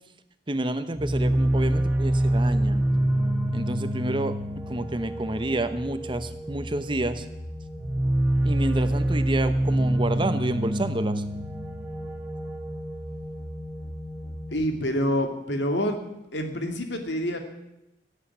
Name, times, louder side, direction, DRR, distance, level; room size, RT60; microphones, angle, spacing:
voice 1, 0.5-2.8 3.5-4.3 4.7-7.2 8.4-11.2, right 1 dB, 25° right, 10 dB, 0.9 m, -29 dB
sound 1, 0.9-14.6, right 1 dB, 10° right, 1.4 m, -27 dB
voice 2, 14.5-16.0 16.3-17.4, equal, 75° left, 5 dB, 2.5 m, -27 dB
17.5 x 8.4 x 9.9 m, 0.89 s
head